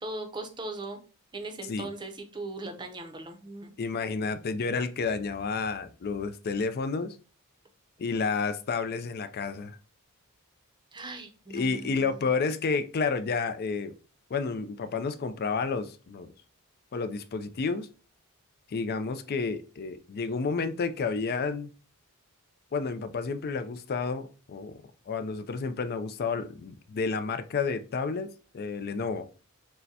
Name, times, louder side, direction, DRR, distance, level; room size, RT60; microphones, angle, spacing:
voice 1, 0.0-1.0 1.3-3.7 10.9-12.3, right 2 dB, 20° right, 0.6 m, -39 dB
voice 2, 3.8-7.2 8.0-9.8 11.5-13.9 14.3-16.3 16.9-17.9 18.7-21.7 22.7-29.3, left 4 dB, 45° left, 0.4 m, -30 dB
6.4 x 2.2 x 2.7 m
head